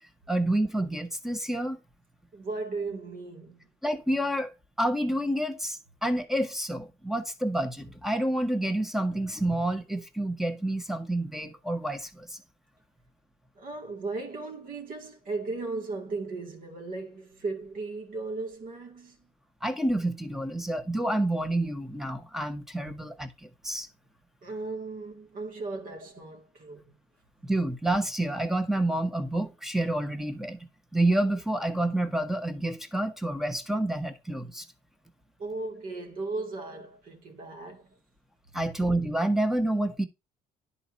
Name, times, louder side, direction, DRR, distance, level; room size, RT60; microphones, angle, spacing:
voice 1, 0.3-1.8 3.8-4.5 4.8-12.4 19.6-23.9 27.4-30.6 30.9-34.6 38.5-40.1, right 1 dB, ahead, 1.1 m, -28 dB
voice 2, 2.3-3.7 13.6-19.2 24.4-27.0 35.4-37.9, right 3 dB, 55° right, 2.2 m, -36 dB
10.5 x 4.3 x 4.0 m
cardioid pair, 110°, 17 cm